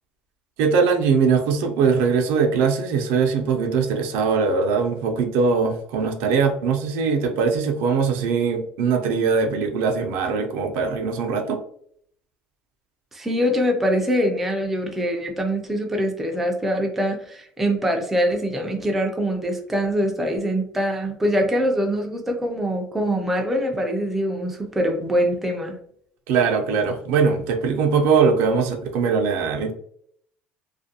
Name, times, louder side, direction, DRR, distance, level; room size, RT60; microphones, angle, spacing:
voice 1, 0.6-11.6 26.3-29.7, right 5 dB, 75° right, 4 dB, 0.5 m, -21 dB
voice 2, 13.1-25.8, equal, 5° right, 2 dB, 0.3 m, -23 dB
2.5 x 2.4 x 2.7 m, 0.63 s
cardioid pair, 175°, 4 cm